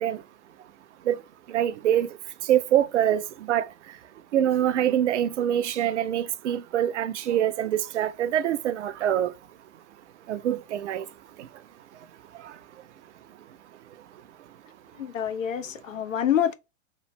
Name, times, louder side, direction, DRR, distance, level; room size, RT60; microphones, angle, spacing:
voice 1, 1.5-2.1 2.5-3.6 4.3-9.3 10.3-11.1, right 11 dB, 60° right, 0.6 m, -24 dB
voice 2, 15.0-16.5, left 9 dB, 75° left, 0.6 m, -26 dB
3.1 x 2.5 x 3.0 m
figure-of-eight pair, 105°, 39 cm